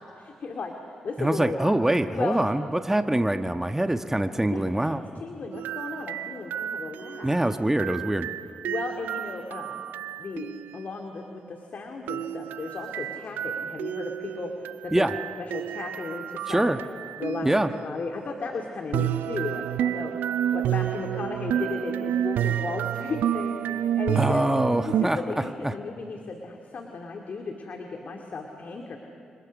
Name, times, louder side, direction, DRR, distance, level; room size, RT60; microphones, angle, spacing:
voice 1, 0.2-1.8 2.1-2.4 4.5-7.4 8.6-9.8 10.2-15.1 15.4-16.7 17.2-20.1 20.5-24.4 24.9-29.0, left 4 dB, 60° left, 3 dB, 2.3 m, -35 dB
voice 2, 1.2-5.0 7.2-8.3 14.9-15.1 16.5-16.8 17.4-17.7 24.2-25.2 25.6-25.7, right 1 dB, 10° right, 7 dB, 1.3 m, -24 dB
sound 1, 5.5-10.8 12.1-17.9 18.9-25.1, right 11 dB, 80° right, 0.6 m, -30 dB
29.0 x 25.0 x 6.5 m, 2.4 s
supercardioid pair, 45°, 3 cm